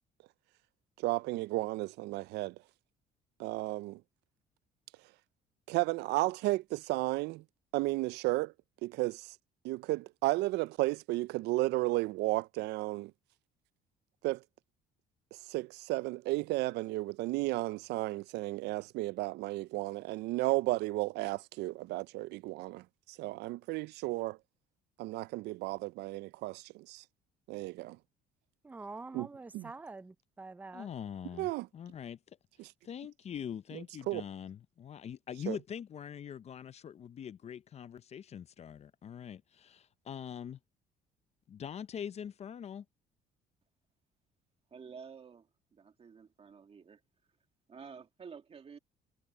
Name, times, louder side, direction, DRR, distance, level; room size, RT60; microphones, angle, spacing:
voice 1, 1.0-2.5 3.4-4.0 5.7-7.4 7.7-8.5 8.8-9.4 9.6-13.1 14.2-14.4 15.5-24.4 25.0-27.0 27.5-28.0 29.1-29.3 29.5-29.7 31.4-31.7 32.6-32.7 34.1-34.2 35.5-35.6, right 20 dB, 85° right, 0.4 m, -33 dB
voice 2, 28.6-30.9, right 3 dB, 10° right, 0.4 m, -46 dB
voice 3, 30.7-32.2 32.8-40.6 41.5-42.8, left 8 dB, 40° left, 0.6 m, -43 dB
voice 4, 44.7-47.0 47.7-48.8, right 6 dB, 35° right, 2.0 m, -51 dB
cardioid pair, 110°, 17 cm